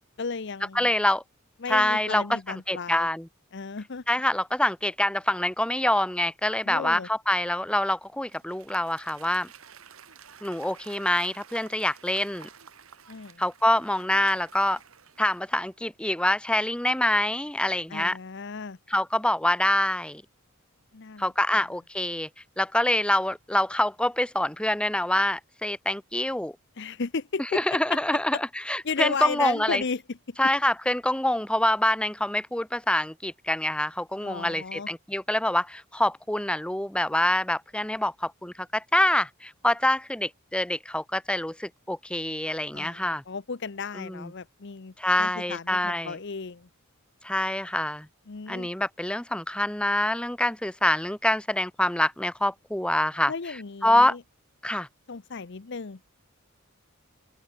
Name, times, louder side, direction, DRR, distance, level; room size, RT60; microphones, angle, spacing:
voice 1, 0.2-0.9 1.6-3.1 3.5-4.0 6.7-7.1 13.1-13.4 17.9-18.8 20.9-21.3 26.8-28.0 28.3-28.4 28.8-30.4 34.2-34.9 42.7-46.7 48.3-48.7 53.3-54.2 55.1-56.0, left 4 dB, 55° left, 0.8 m, -34 dB
voice 2, 0.7-1.2 1.7-3.3 4.1-9.5 10.4-12.5 13.4-14.8 15.2-18.2 18.9-20.2 21.2-22.3 22.6-26.5 27.5-29.8 30.4-43.2 44.0-44.3 45.0-46.2 47.2-48.1 48.5-53.3 53.8-54.2 54.6-54.9, left 1 dB, 5° left, 0.9 m, -26 dB
Applause / Crowd, 8.0-15.8, right 7 dB, 80° right, 2.4 m, -51 dB
open air
head